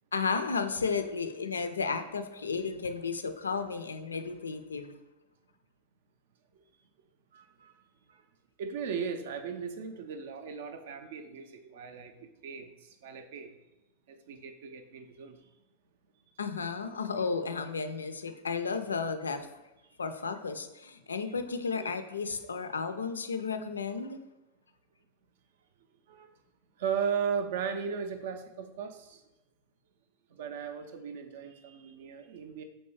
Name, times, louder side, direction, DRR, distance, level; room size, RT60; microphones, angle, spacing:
voice 1, 0.1-4.9 16.4-19.5 20.0-24.2, left 5 dB, 75° left, 9 dB, 0.3 m, -33 dB
voice 2, 7.3-7.7 8.1-8.3 8.6-13.5 14.1-15.5 21.7-21.9 26.1-26.3 26.8-29.2 30.3-32.6, right 7 dB, 55° right, 8 dB, 0.4 m, -37 dB
4.4 x 2.6 x 3.1 m, 0.98 s
figure-of-eight pair, 90°, 0 cm